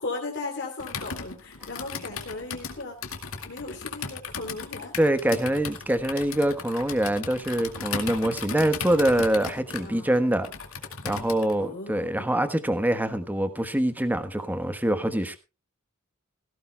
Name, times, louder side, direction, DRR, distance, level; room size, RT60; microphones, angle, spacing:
voice 1, 0.0-3.0 3.4-4.9 9.8-10.2 11.6-12.3, left 3 dB, 55° left, 3.2 m, -36 dB
Computer keyboard, 0.8-11.6, left 5 dB, 80° left, 2.2 m, -37 dB
voice 2, 5.0-10.5 11.0-15.4, right 1 dB, 10° right, 1.2 m, -25 dB
17.5 x 16.0 x 2.3 m
head